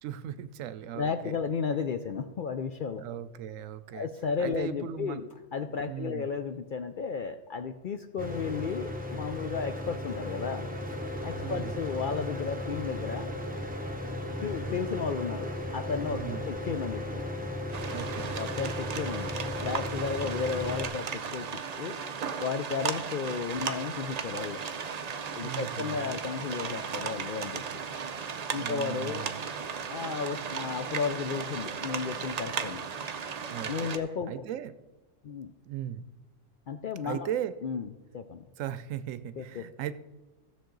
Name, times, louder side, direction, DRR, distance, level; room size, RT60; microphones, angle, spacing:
voice 1, 0.0-1.4 3.0-4.1 4.4-5.3 5.8-6.3 11.3-11.7 16.1-16.5 17.9-18.4 20.3-20.4 25.4-26.2 28.6-29.4 33.4-33.9 34.3-34.7 35.7-36.0 37.0-37.5 38.6-39.9, right 10 dB, 85° right, 13 dB, 1.0 m, -37 dB
voice 2, 0.9-3.0 3.9-5.2 5.5-10.7 11.2-13.3 14.4-17.3 18.4-19.3 19.6-22.0 22.4-24.6 25.4-27.6 28.5-29.3 29.9-32.9 33.7-34.3 35.2-35.5 36.7-37.3 37.6-38.4 39.4-39.6, left 5 dB, 65° left, 8 dB, 0.5 m, -33 dB
Mechanical fan, 8.2-20.9, left 1 dB, 10° right, 0.7 m, -36 dB
sound 1, 17.7-34.0, right 6 dB, 50° right, 0.5 m, -36 dB
15.5 x 6.6 x 3.9 m, 1.1 s
omnidirectional pair, 1.3 m